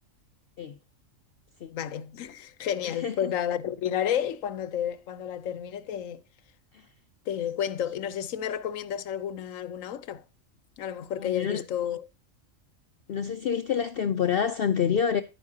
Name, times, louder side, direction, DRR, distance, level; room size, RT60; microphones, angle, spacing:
voice 1, 1.7-6.2 7.3-10.2 10.8-12.0, left 9 dB, 80° left, 1.1 m, -31 dB
voice 2, 2.8-3.3 6.7-6.9 11.1-11.6 13.1-15.2, left 7 dB, 55° left, 0.7 m, -27 dB
10.5 x 9.6 x 2.7 m
omnidirectional pair, 1.4 m